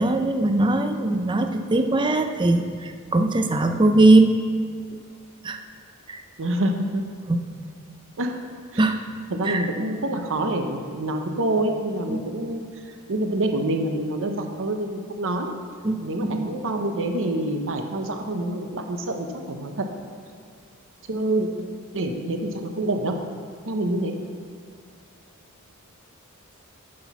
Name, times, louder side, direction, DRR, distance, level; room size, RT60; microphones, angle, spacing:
voice 1, 0.0-2.7 3.1-4.4 5.4-5.6 6.1-6.2 7.3-7.4 8.8-8.9 9.4-9.7 12.1-12.2 15.8-16.5, right 2 dB, 20° right, 7 dB, 0.6 m, -20 dB
voice 2, 6.4-7.0 8.2-8.4 8.7-8.8 9.3-12.6 13.1-15.5 16.0-19.9 21.1-21.5 21.9-23.2 23.7-24.1, right 1 dB, 60° right, 4 dB, 0.8 m, -26 dB
9.5 x 6.0 x 6.0 m, 2.1 s
head